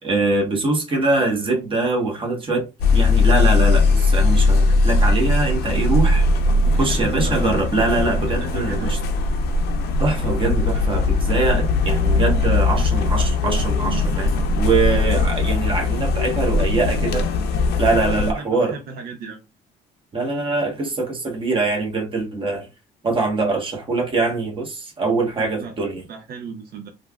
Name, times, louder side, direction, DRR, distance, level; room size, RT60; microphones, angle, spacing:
voice 1, 0.0-2.7 2.9-6.3 6.8-9.0 10.0-17.3 17.8-18.8 20.1-22.7 23.0-26.0, right 3 dB, 30° right, 1.1 m, -23 dB
sound 1, 2.8-18.3, left 3 dB, 70° left, 0.6 m, -19 dB
voice 2, 6.6-7.5 8.3-9.0 17.9-19.4 25.4-25.8 26.1-26.9, right 5 dB, 65° right, 0.6 m, -34 dB
3.3 x 2.3 x 2.3 m
cardioid pair, 110°, 17 cm